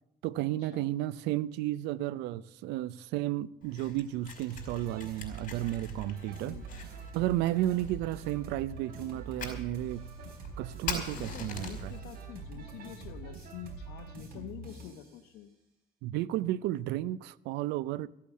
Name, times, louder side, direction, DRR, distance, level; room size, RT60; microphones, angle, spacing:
voice 1, 0.2-6.6 7.1-10.0 10.6-11.9 16.0-18.1, right 14 dB, 90° right, 0.5 m, -33 dB
Fire, 3.6-12.0, left 5 dB, 50° left, 4.9 m, -44 dB
sound 1, 4.5-15.1, right 5 dB, 60° right, 4.5 m, -44 dB
voice 2, 11.0-15.5, left 11 dB, 85° left, 0.9 m, -46 dB
14.5 x 8.6 x 8.4 m
cardioid pair, 110°, 17 cm